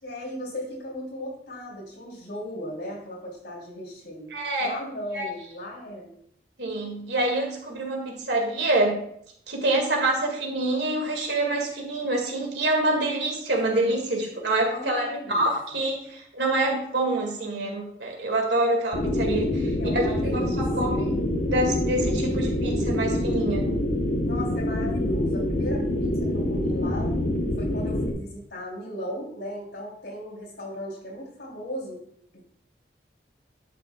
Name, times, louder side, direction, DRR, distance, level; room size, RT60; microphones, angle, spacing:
voice 1, 0.0-4.3 4.6-6.1 14.7-15.5 19.8-21.0 24.2-27.1 27.6-32.0 32.3-32.4, equal, 85° left, -2 dB, 3.1 m, -37 dB
voice 2, 4.3-4.7 5.1-5.3 6.6-9.0 9.5-19.6 19.9-21.1 21.5-23.7, right 2 dB, 80° right, 1 dB, 2.0 m, -26 dB
sound 1, 18.9-28.1, left 1 dB, 50° left, 0.9 m, -26 dB
10.5 x 6.5 x 2.3 m, 0.68 s
head